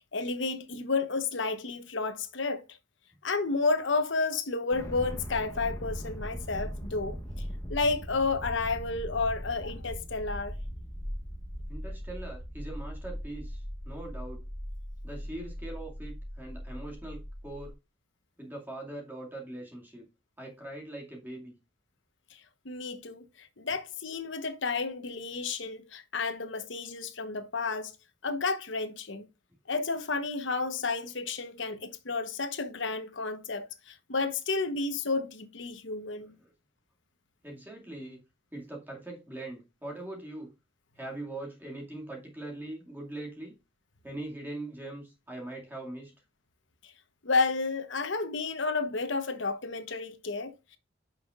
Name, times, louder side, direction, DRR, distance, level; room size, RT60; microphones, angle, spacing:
voice 1, 0.1-2.6 3.2-7.2 7.7-10.5 22.3-27.9 28.2-29.3 29.7-36.3 46.8-46.9 47.2-50.8, left 3 dB, 75° left, 1.0 m, -31 dB
sound 1, 4.7-17.7, equal, 15° left, 1.0 m, -39 dB
voice 2, 11.7-14.4 15.0-17.7 18.4-20.0 20.4-21.5 36.2-36.5 37.4-38.2 38.5-40.5 41.0-43.5 44.0-46.1, right 2 dB, 10° right, 2.2 m, -41 dB
10.0 x 5.7 x 2.4 m
head